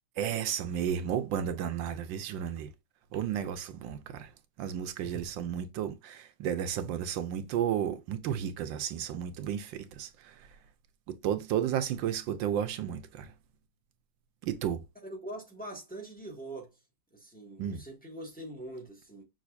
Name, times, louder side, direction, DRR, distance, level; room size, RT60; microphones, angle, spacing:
voice 1, 0.2-2.7 3.1-4.3 4.6-10.5 11.1-13.3 14.4-14.8 17.6-17.8, right 9 dB, 80° right, 1.4 m, -33 dB
voice 2, 15.0-16.8 17.1-19.2, right 1 dB, 5° left, 1.4 m, -43 dB
6.2 x 3.4 x 2.4 m
omnidirectional pair, 2.1 m